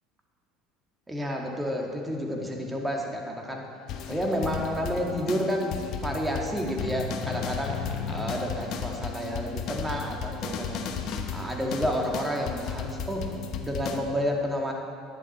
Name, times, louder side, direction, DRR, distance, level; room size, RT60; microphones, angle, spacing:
voice 1, 1.1-3.7 4.1-5.8 6.0-10.9 11.3-13.3 13.6-14.7, equal, 10° right, 0 dB, 2.1 m, -30 dB
sound 1, 3.9-14.0, left 6 dB, 60° left, 1.0 m, -34 dB
11.5 x 9.9 x 4.4 m, 2.3 s
hypercardioid pair, 80°, 0 cm